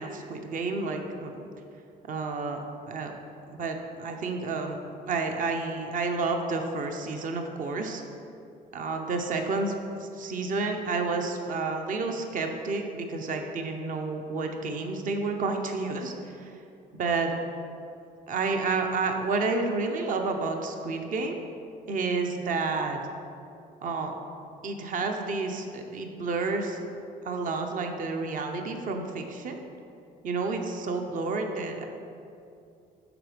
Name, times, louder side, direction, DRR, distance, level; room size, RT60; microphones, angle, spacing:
voice 1, 0.0-1.5 2.1-3.1 3.5-4.8 5.1-8.0 8.7-16.5 16.9-17.4 18.3-21.4 21.9-23.0 23.8-24.1 24.6-26.9 27.2-29.6 30.2-31.9, right 3 dB, 50° right, 4 dB, 1.0 m, -30 dB
12.0 x 5.0 x 5.2 m, 2.6 s
cardioid pair, 110°, 17 cm